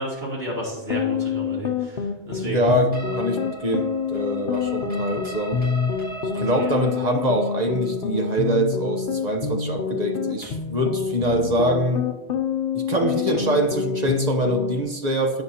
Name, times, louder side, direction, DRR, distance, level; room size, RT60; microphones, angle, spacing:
voice 1, 0.0-2.7 6.3-6.8, right 1 dB, 70° right, -6 dB, 3.5 m, -32 dB
sound 1, 0.8-14.8, left 6 dB, 60° left, 0.9 m, -27 dB
voice 2, 2.4-5.6 6.4-12.0 12.7-15.4, right 1 dB, 45° right, 4 dB, 1.0 m, -24 dB
sound 2, 2.9-10.8, right 2 dB, 10° right, 2.0 m, -39 dB
17.0 x 6.2 x 2.9 m, 1.0 s
omnidirectional pair, 1.1 m